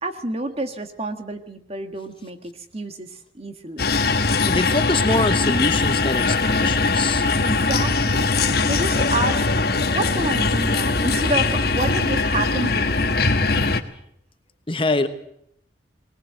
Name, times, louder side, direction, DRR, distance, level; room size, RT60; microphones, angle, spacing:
voice 1, 0.0-3.9 7.4-8.3 8.6-13.2 13.5-13.8, right 2 dB, 35° right, 7 dB, 1.6 m, -29 dB
sound 1, 3.8-13.8, left 3 dB, 55° left, 1.4 m, -21 dB
voice 2, 4.5-7.2 14.7-15.1, left 2 dB, 30° left, 9 dB, 1.1 m, -24 dB
20.0 x 19.5 x 7.9 m, 0.74 s
head